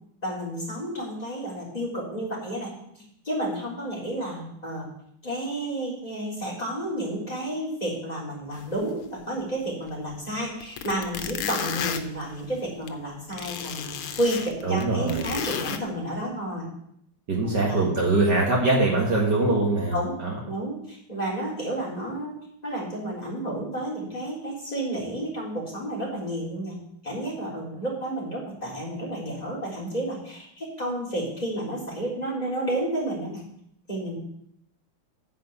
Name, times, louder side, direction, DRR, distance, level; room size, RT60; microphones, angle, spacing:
voice 1, 0.2-2.7 3.2-4.9 5.2-16.7 17.4-17.9 19.9-20.1 20.4-22.3 22.6-26.8 27.0-33.4 33.9-34.2, right 1 dB, 15° left, -4 dB, 3.9 m, -31 dB
sound 1, 8.6-8.7 9.0-9.1 10.1-10.2 10.6-12.9 13.3-15.8, left 8 dB, 85° left, 1.7 m, -32 dB
voice 2, 14.6-15.2 17.3-19.9 20.2-20.3, right 2 dB, 50° right, -2 dB, 2.3 m, -22 dB
9.9 x 5.2 x 8.1 m, 0.71 s
omnidirectional pair, 2.3 m